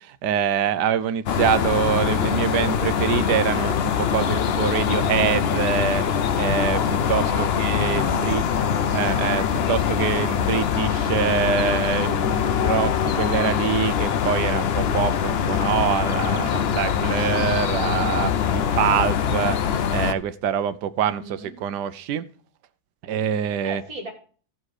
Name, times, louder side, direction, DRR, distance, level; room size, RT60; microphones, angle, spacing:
voice 1, 0.2-6.0 6.4-8.4 8.9-19.6 19.9-22.2 23.0-23.8, right 8 dB, 90° right, 13 dB, 1.3 m, -25 dB
sound 1, 1.3-20.1, left 8 dB, 60° left, 0.6 m, -23 dB
voice 2, 8.0-9.2 21.2-21.5 23.6-24.1, right 2 dB, 60° right, -2 dB, 3.8 m, -39 dB
14.0 x 5.7 x 4.8 m, 0.42 s
omnidirectional pair, 1.8 m